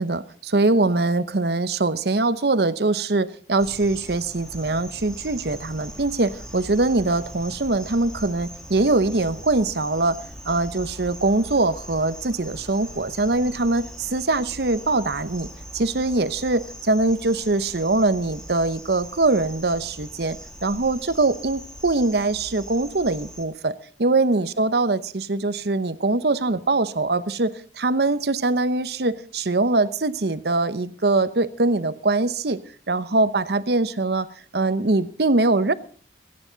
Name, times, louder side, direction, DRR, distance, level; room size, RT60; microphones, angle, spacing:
voice 1, 0.0-10.2 10.4-15.5 15.7-32.6 32.9-34.3 34.5-35.7, right 2 dB, 60° right, 14 dB, 0.9 m, -22 dB
sound 1, 3.6-23.4, equal, 5° left, 1.9 m, -41 dB
27.5 x 9.8 x 4.0 m, 0.42 s
head